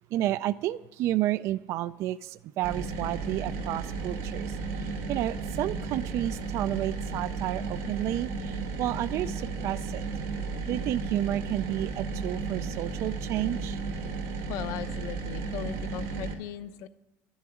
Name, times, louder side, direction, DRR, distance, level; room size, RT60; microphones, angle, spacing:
voice 1, 0.1-10.0 10.7-13.8, right 13 dB, 45° right, 14 dB, 0.3 m, -31 dB
sound 1, 2.6-16.3, right 4 dB, 90° right, 2.5 m, -34 dB
voice 2, 14.5-16.9, left 12 dB, 55° left, 12 dB, 0.8 m, -38 dB
12.5 x 7.1 x 9.8 m, 1.1 s
cardioid pair, 165°, 6 cm